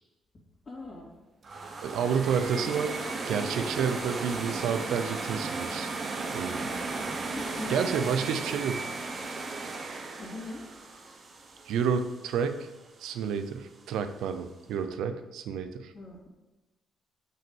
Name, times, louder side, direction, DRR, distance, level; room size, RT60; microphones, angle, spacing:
voice 1, 0.7-1.1 6.7-6.9 7.3-7.8 8.2-8.3 10.2-10.6 15.9-16.3, left 2 dB, 35° left, -4 dB, 2.5 m, -41 dB
sound 1, 1.4-12.4, right 3 dB, 40° right, 1.2 m, -35 dB
voice 2, 1.8-3.0 3.3-5.9 6.3-6.7 7.7-8.8 11.7-12.7 13.0-15.9, right 7 dB, 85° right, 9 dB, 0.7 m, -30 dB
6.1 x 5.7 x 7.2 m, 1.1 s
cardioid pair, 90°, 0 cm